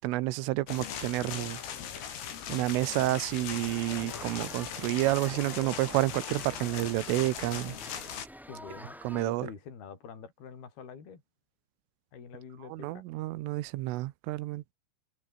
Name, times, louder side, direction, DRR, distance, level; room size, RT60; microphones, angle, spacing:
voice 1, 0.0-1.6 2.5-7.8 9.0-9.5 12.7-14.6, right 18 dB, 85° right, 3.5 m, -30 dB
sound 1, 0.7-8.3, left 9 dB, 80° left, 6.4 m, -39 dB
sound 2, 3.6-9.2, equal, ahead, 3.5 m, -48 dB
voice 2, 8.5-11.2 12.1-13.0, left 6 dB, 50° left, 6.7 m, -46 dB
omnidirectional pair, 5.8 m